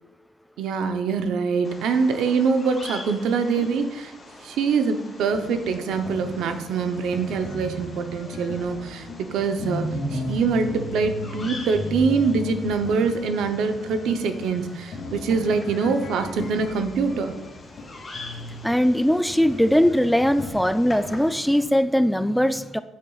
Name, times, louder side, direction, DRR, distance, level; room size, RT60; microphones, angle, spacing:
voice 1, 0.6-4.1 4.4-17.4, right 5 dB, 80° right, 7 dB, 0.7 m, -24 dB
Bird vocalization bird call bird song, 1.6-21.6, left 2 dB, 25° left, 2.6 m, -44 dB
sound 1, 5.3-21.3, left 1 dB, 55° left, 2.4 m, -36 dB
voice 2, 18.6-22.8, equal, ahead, 12 dB, 0.3 m, -20 dB
9.8 x 6.6 x 2.4 m, 1.0 s
cardioid pair, 135°, 0 cm